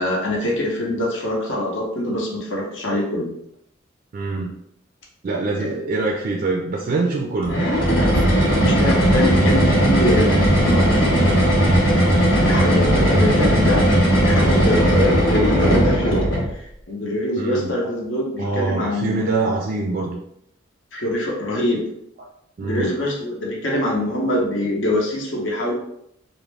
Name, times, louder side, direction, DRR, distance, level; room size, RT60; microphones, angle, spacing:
voice 1, 0.0-3.3 5.6-5.7 8.3-11.0 12.4-13.8 14.2-16.3 16.5-19.3 20.9-21.8 22.6-25.7, left 1 dB, 70° left, -2 dB, 0.7 m, -24 dB
voice 2, 4.1-4.5 5.2-7.6 17.4-17.9 18.4-20.2 22.6-22.9, right 3 dB, 45° right, 0 dB, 0.3 m, -24 dB
sound 1, 7.4-16.5, equal, 90° left, 1.0 m, -17 dB
2.4 x 2.0 x 3.2 m, 0.75 s
head